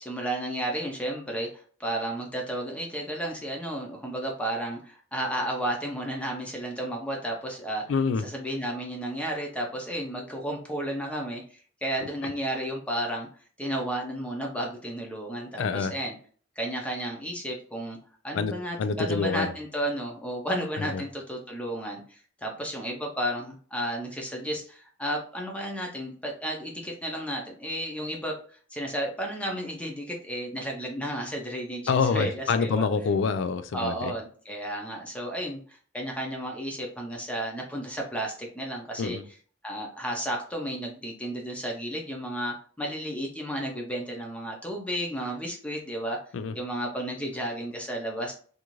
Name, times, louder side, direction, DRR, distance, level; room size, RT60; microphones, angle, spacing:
voice 1, 0.0-7.8 8.2-13.3 13.6-16.1 16.6-18.0 18.2-32.9 33.7-39.2 39.6-46.2 46.5-48.3, right 1 dB, 5° left, 0.5 m, -33 dB
voice 2, 7.9-8.2 15.6-15.9 18.3-18.5 18.8-19.5 20.8-21.0 31.9-34.1 39.0-39.2 46.3-46.5, left 5 dB, 75° left, 0.3 m, -26 dB
2.6 x 2.3 x 2.9 m
head